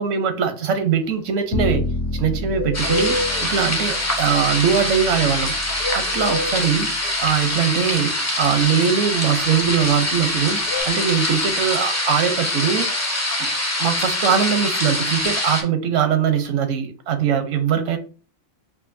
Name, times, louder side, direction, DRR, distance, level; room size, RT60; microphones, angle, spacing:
voice 1, 0.0-1.9 2.1-5.5 5.9-6.9 7.2-10.6 10.9-12.9 13.4-13.5 13.8-18.0, right 7 dB, 85° right, 1.0 m, -21 dB
Bird, 0.9-10.8, left 2 dB, 50° left, 1.1 m, -30 dB
Bowed string instrument, 1.5-7.7, left 1 dB, 70° left, 0.9 m, -30 dB
sound 1, 2.7-15.6, left 1 dB, 20° left, 0.5 m, -24 dB
4.9 x 2.5 x 2.5 m
omnidirectional pair, 1.2 m